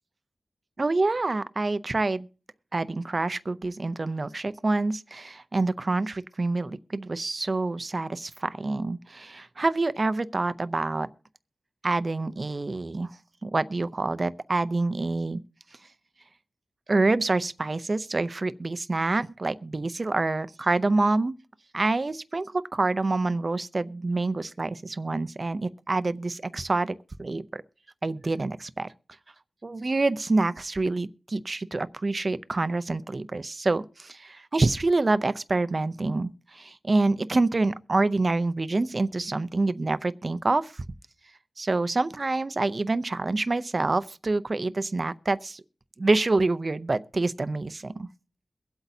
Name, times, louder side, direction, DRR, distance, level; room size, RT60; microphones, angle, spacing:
voice 1, 0.8-2.3 2.7-11.1 11.8-13.1 13.4-15.4 16.9-21.3 21.7-27.6 28.0-28.9 29.6-40.8 41.6-45.6 46.0-48.1, right 3 dB, 40° right, 0.5 m, -27 dB
23.0 x 8.1 x 2.7 m
wide cardioid pair, 75°, 0 cm